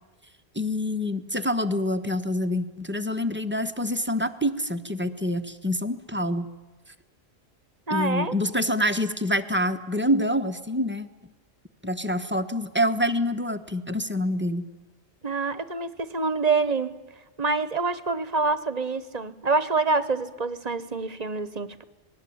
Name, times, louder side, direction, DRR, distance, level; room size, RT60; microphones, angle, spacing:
voice 1, 0.5-6.5 7.9-11.1 11.8-14.7, left 1 dB, 10° right, 9 dB, 1.2 m, -26 dB
voice 2, 7.9-8.3 15.2-17.0 17.4-21.8, right 3 dB, 40° right, 14 dB, 1.3 m, -26 dB
27.0 x 20.0 x 8.8 m, 1.2 s
omnidirectional pair, 1.1 m